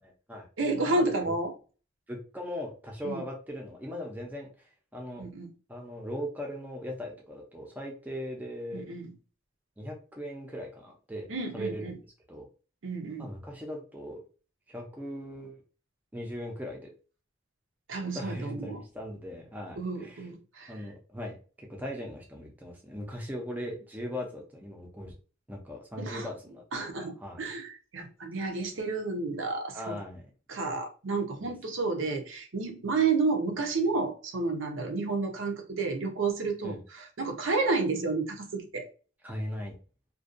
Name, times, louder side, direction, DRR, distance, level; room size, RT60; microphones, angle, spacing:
voice 1, 0.0-0.5 0.8-1.1 2.1-5.2 5.7-8.8 9.8-11.3 11.5-11.9 12.3-12.5 13.2-14.2 14.7-15.6 16.1-16.9 18.1-20.3 20.7-25.1 25.5-26.6 27.0-27.4 29.7-30.2 31.4-31.5 36.6-36.8 39.2-39.7, equal, 10° right, 0.4 m, -39 dB
voice 2, 0.6-1.5 3.0-3.2 5.2-5.5 8.7-9.1 11.3-11.9 12.8-13.3 17.9-18.8 19.8-20.7 26.0-26.3 26.7-30.0 30.5-38.9, right 3 dB, 85° right, 0.6 m, -31 dB
2.5 x 2.2 x 2.4 m
head